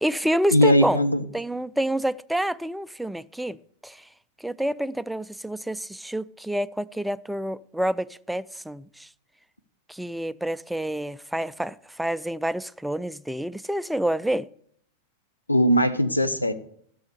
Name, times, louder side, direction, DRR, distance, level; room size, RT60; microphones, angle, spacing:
voice 1, 0.0-1.0 1.3-4.1 4.4-9.1 9.9-14.5, right 1 dB, ahead, 0.3 m, -28 dB
voice 2, 0.5-1.2 15.5-16.5, equal, 85° left, 0.8 m, -19 dB
13.0 x 6.3 x 6.7 m
figure-of-eight pair, 90°, 0 cm